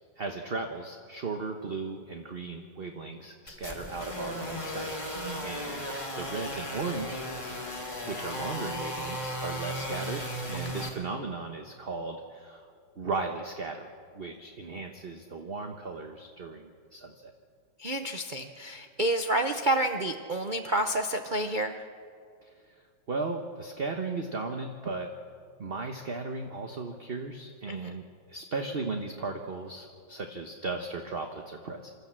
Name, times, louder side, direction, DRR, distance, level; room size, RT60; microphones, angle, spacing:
voice 1, 0.2-4.9 5.3-7.7 8.1-12.7 13.0-17.3 22.4-25.1 25.6-31.9, right 3 dB, 40° right, 4 dB, 1.0 m, -36 dB
sound 1, 3.5-10.9, equal, 15° left, 2.6 m, -36 dB
voice 2, 17.8-21.8 27.7-28.0, right 1 dB, 60° right, 5 dB, 0.5 m, -29 dB
27.0 x 13.5 x 7.5 m, 2.2 s
omnidirectional pair, 2.1 m